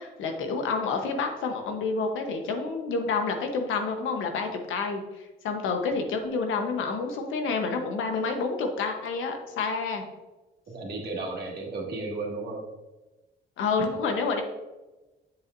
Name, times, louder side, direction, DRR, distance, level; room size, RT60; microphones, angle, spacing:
voice 1, 0.0-5.0 5.4-10.0 13.6-14.4, left 4 dB, 85° left, 4 dB, 1.1 m, -28 dB
voice 2, 10.7-12.7, right 3 dB, 55° right, -3 dB, 2.2 m, -34 dB
7.4 x 7.3 x 2.6 m, 1.1 s
cardioid pair, 90°, 20 cm